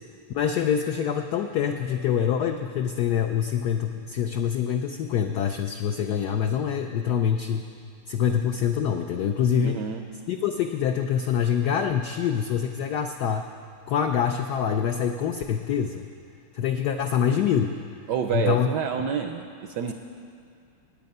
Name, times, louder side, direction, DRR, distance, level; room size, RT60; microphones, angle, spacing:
voice 1, 0.3-7.7 8.1-9.8 10.3-13.5 13.9-16.1 16.5-17.7 18.3-18.7, left 8 dB, 85° left, 5 dB, 0.9 m, -25 dB
voice 2, 9.6-10.1 18.1-19.9, right 7 dB, 75° right, 6 dB, 1.0 m, -28 dB
18.5 x 9.3 x 5.4 m, 2.3 s
omnidirectional pair, 2.4 m